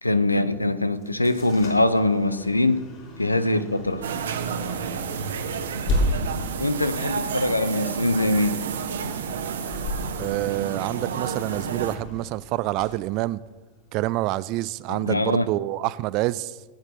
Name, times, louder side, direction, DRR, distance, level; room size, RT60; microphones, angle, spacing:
voice 1, 0.0-2.9 3.2-4.1 6.6-8.6 14.9-15.5, left 2 dB, 85° left, 0.6 m, -23 dB
sound 1, 0.9-13.9, left 1 dB, 40° left, 3.9 m, -34 dB
sound 2, 4.0-12.0, right 6 dB, 65° right, 1.0 m, -31 dB
voice 2, 10.2-13.4 13.9-16.6, right 17 dB, 40° right, 0.4 m, -27 dB
19.0 x 9.6 x 3.0 m
figure-of-eight pair, 90°, 0 cm